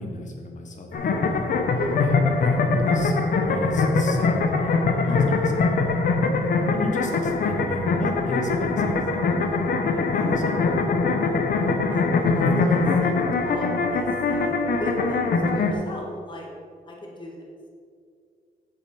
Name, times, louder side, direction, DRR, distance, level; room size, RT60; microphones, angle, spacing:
voice 1, 0.0-1.4 2.0-3.2 3.5-4.8 5.1-6.0 6.7-10.8, left 2 dB, 50° left, 2 dB, 1.5 m, -33 dB
sound 1, 0.9-15.7, left 3 dB, 65° left, 1.0 m, -22 dB
voice 2, 5.0-5.6 11.9-16.5 16.9-17.5, equal, 30° left, -1 dB, 1.7 m, -36 dB
7.9 x 6.8 x 6.0 m, 2.2 s
wide cardioid pair, 135°, 17 cm